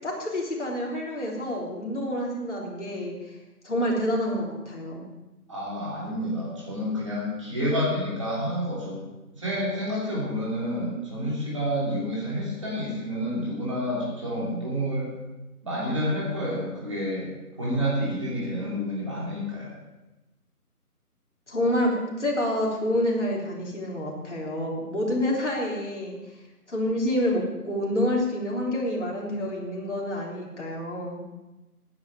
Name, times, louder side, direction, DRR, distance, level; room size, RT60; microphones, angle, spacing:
voice 1, 0.0-3.4 3.6-5.1 21.5-26.2 26.7-31.2, left 1 dB, 50° left, -3 dB, 3.5 m, -28 dB
voice 2, 5.5-9.0 9.3-15.1 15.6-17.3 17.6-19.8, equal, 20° right, -7 dB, 3.1 m, -29 dB
14.5 x 9.8 x 5.0 m, 1.0 s
figure-of-eight pair, 170°, 46 cm